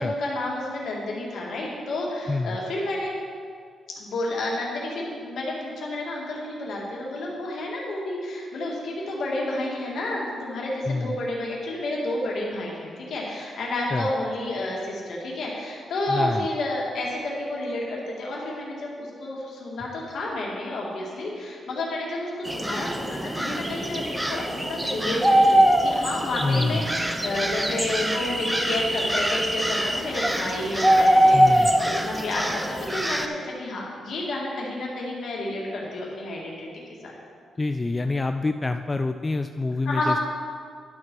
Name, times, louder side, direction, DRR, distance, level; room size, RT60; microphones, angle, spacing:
voice 1, 0.0-3.2 4.0-37.2 39.9-40.2, left 1 dB, 75° left, -3 dB, 2.2 m, -30 dB
voice 2, 10.8-11.2 13.9-14.1 16.1-16.5 26.4-26.9 31.3-31.8 37.6-40.2, left 3 dB, 25° left, 7 dB, 0.3 m, -26 dB
sound 1, 22.4-33.3, right 1 dB, 10° right, 0.7 m, -23 dB
10.5 x 4.4 x 6.1 m, 2.1 s
cardioid pair, 70°, 0 cm